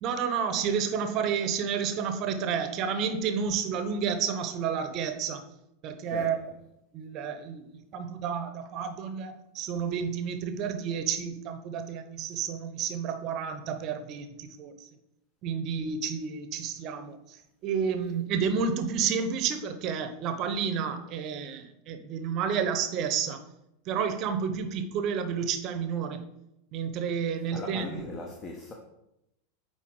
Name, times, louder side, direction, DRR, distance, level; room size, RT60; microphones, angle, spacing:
voice 1, 0.0-5.5 5.8-6.4 6.9-14.9 15.4-23.4 23.9-26.2 26.7-28.1, right 6 dB, 40° right, 0.8 m, -30 dB
voice 2, 6.0-6.4 27.5-28.7, left 2 dB, 25° left, 0.9 m, -38 dB
8.4 x 4.0 x 3.7 m
figure-of-eight pair, 90°, 0 cm